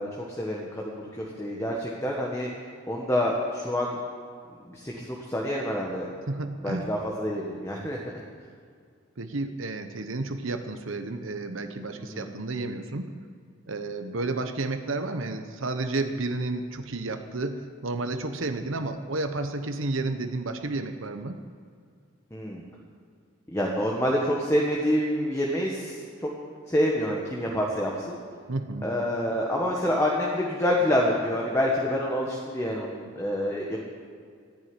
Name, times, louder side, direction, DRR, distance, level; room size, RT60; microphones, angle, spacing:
voice 1, 0.0-2.5 2.9-4.0 4.7-6.1 6.6-8.1 12.0-12.3 22.3-22.6 23.5-26.3 26.7-28.2 28.8-33.7, equal, 15° left, -2 dB, 1.5 m, -27 dB
voice 2, 6.3-6.9 9.2-13.1 13.7-21.4 28.5-28.9, right 2 dB, 75° right, 7 dB, 1.0 m, -31 dB
14.5 x 10.5 x 9.0 m, 2.2 s
head